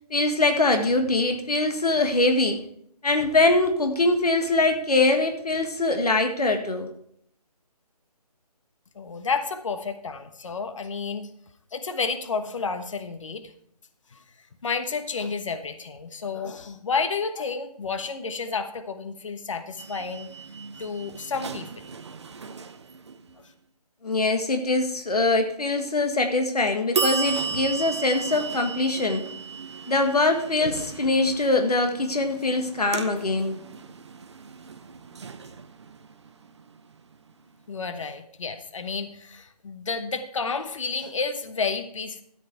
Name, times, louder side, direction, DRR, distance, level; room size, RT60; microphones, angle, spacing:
voice 1, 0.1-2.6 3.0-6.9 24.0-29.3 29.9-33.6, left 2 dB, 70° left, 6 dB, 1.8 m, -23 dB
voice 2, 8.9-11.3 11.7-13.5 14.1-14.2 14.6-20.3 20.8-21.7 37.7-42.2, left 5 dB, 50° left, 9 dB, 1.2 m, -31 dB
sound 1, 19.8-23.5 26.9-37.6, right 5 dB, 45° right, 0.9 m, -35 dB
13.5 x 8.0 x 4.5 m, 0.69 s
figure-of-eight pair, 155°, 20 cm